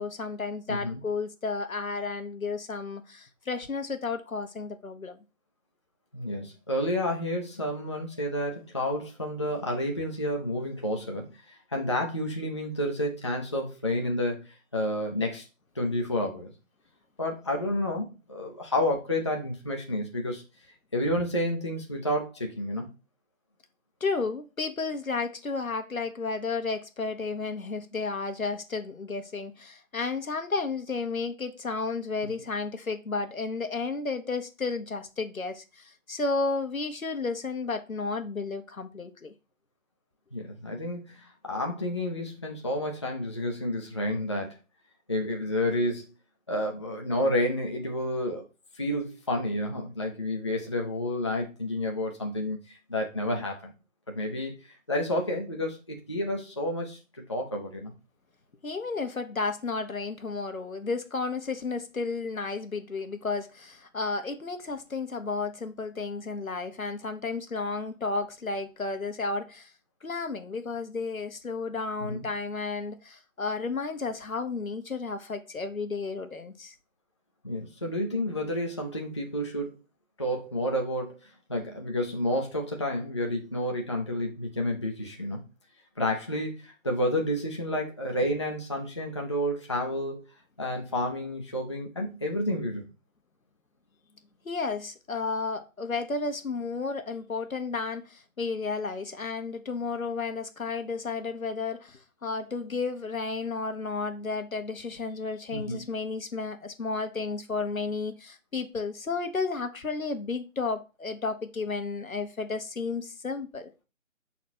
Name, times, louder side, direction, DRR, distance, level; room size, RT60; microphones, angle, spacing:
voice 1, 0.0-5.2 24.0-39.3 58.6-69.7 70.0-76.7 94.4-113.7, left 4 dB, 80° left, 1.1 m, -32 dB
voice 2, 0.7-1.0 6.1-14.5 14.7-15.4 15.8-16.5 17.2-20.4 20.9-22.9 40.3-44.6 45.1-46.1 46.5-48.4 48.8-53.7 54.1-54.5 54.9-57.0 57.3-57.9 72.1-72.3 77.4-79.7 80.2-81.2 81.5-85.4 86.0-90.2 90.6-92.9 105.5-105.8, left 1 dB, 20° left, 0.5 m, -30 dB
6.3 x 4.1 x 4.3 m
figure-of-eight pair, 145°, 40 cm